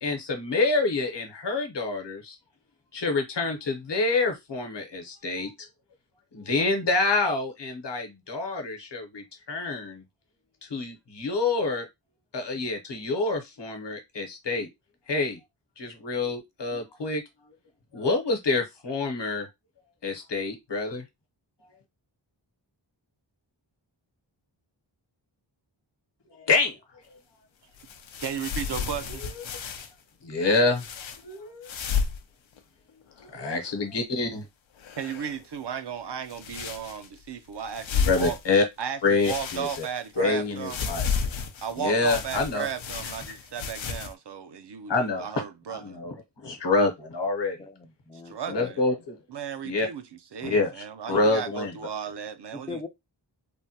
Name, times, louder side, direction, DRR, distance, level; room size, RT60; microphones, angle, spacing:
voice 1, 0.0-2.4 2.9-5.5 6.3-10.0 10.7-11.9 12.3-14.7 15.1-15.4 15.8-17.2 17.9-19.5 20.0-21.0 26.4-26.7 29.5-29.6 30.2-30.8 31.2-31.7 33.2-34.4 38.1-38.6 39.0-39.8 40.2-41.1 41.8-42.7 44.9-45.3 45.7-46.1 46.4-47.6 48.5-49.2 49.6-49.9 50.4-51.7, left 3 dB, 65° left, 0.9 m, -27 dB
sound 1, 27.7-29.9 30.7-31.2 31.6-32.2 32.5-32.6 33.1-33.7 34.8-35.4 36.3-37.2 37.7-38.8 39.2-40.2 40.6-44.1, left 6 dB, 85° left, 0.6 m, -32 dB
voice 2, 28.2-29.2 35.0-38.4 38.8-40.9 41.6-46.0 48.3-48.8 49.3-50.0 50.3-52.9, right 8 dB, 65° right, 0.6 m, -35 dB
voice 3, 47.6-48.7 52.5-52.9, left 4 dB, 15° left, 0.4 m, -40 dB
3.4 x 2.1 x 2.7 m
wide cardioid pair, 75°, 45 cm